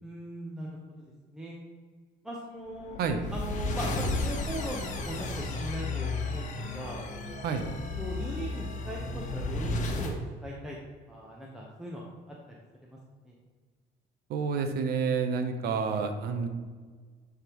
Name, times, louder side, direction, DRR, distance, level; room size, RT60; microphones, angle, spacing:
voice 1, 0.0-1.6 2.2-3.0 3.3-7.1 8.0-10.1 10.4-10.8 11.1-12.1 12.8-13.0 13.2-13.4, equal, 5° right, -4 dB, 0.9 m, -39 dB
sound 1, 2.8-10.2, left 2 dB, 45° left, 1.0 m, -33 dB
voice 2, 14.3-16.5, right 5 dB, 70° right, 7 dB, 0.8 m, -29 dB
10.5 x 3.6 x 3.0 m, 1.5 s
cardioid pair, 110°, 17 cm